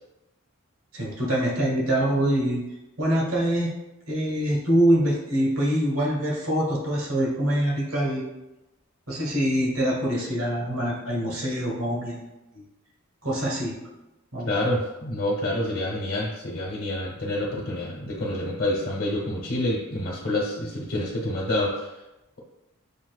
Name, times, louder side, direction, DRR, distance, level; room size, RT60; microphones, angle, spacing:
voice 1, 0.9-2.6 3.0-3.7 4.1-8.2 9.1-12.2 12.5-12.6 13.2-13.8 14.3-14.5, right 1 dB, 85° right, -4 dB, 1.2 m, -24 dB
voice 2, 14.5-21.9, left 1 dB, 65° left, -5 dB, 0.9 m, -27 dB
7.0 x 2.5 x 2.3 m, 0.99 s
head